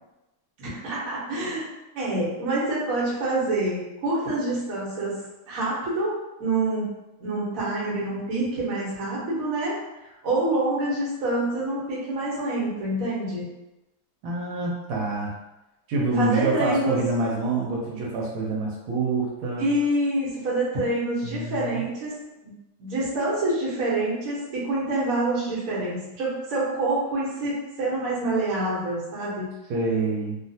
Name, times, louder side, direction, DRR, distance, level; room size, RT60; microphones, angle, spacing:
voice 1, 0.6-1.6 1.9-6.1 6.4-6.9 7.2-9.7 10.2-13.5 16.2-17.0 19.6-22.1 22.4-22.5 22.8-29.5, right 2 dB, 50° right, -7 dB, 1.2 m, -26 dB
voice 2, 14.2-15.3 15.9-19.7 21.2-21.8 29.7-30.4, right 3 dB, 80° right, -4 dB, 1.5 m, -26 dB
3.3 x 2.4 x 2.7 m, 0.99 s
omnidirectional pair, 2.3 m